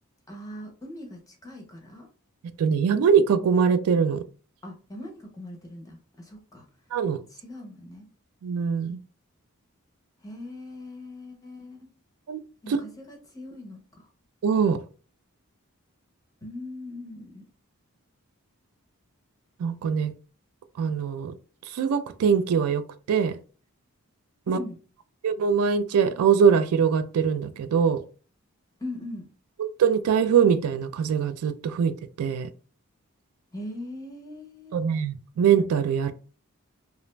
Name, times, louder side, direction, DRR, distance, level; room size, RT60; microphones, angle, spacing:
voice 1, 0.3-2.1 4.6-6.7 7.3-8.1 10.2-11.9 12.6-14.1 16.4-17.4 24.5-24.8 28.8-29.3 33.5-34.9, left 1 dB, 15° left, 1 dB, 0.5 m, -40 dB
voice 2, 2.6-4.2 6.9-7.2 8.4-9.0 12.3-12.4 12.7-12.8 14.4-14.8 19.6-20.1 20.8-21.3 21.7-23.4 24.5-24.6 25.2-28.0 29.6-31.9 32.2-32.5 34.7-36.1, right 7 dB, 75° right, 12 dB, 0.3 m, -22 dB
2.4 x 2.1 x 3.0 m, 0.38 s
head